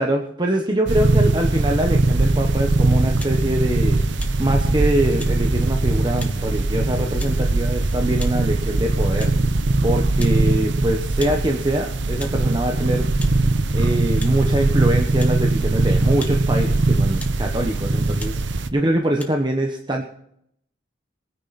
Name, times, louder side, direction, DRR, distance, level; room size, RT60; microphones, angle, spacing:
voice 1, 0.0-4.0 4.4-9.3 9.8-13.1 13.7-18.4 18.7-20.0, right 1 dB, 25° right, 2 dB, 1.1 m, -23 dB
sound 1, 0.9-18.7, right 2 dB, 70° right, 0.9 m, -20 dB
sound 2, 3.2-3.4 4.2-4.4 5.2-5.3 6.2-6.4 7.2-7.3 8.2-8.4 9.2-9.4 10.2-10.4 11.2-11.4 12.2-12.4 13.2-13.4 14.2-14.3 15.2-15.4 16.2-16.4 17.2-17.4 18.2-18.3 19.2-19.3, left 2 dB, 10° left, 1.5 m, -37 dB
22.0 x 9.8 x 4.2 m, 0.73 s
head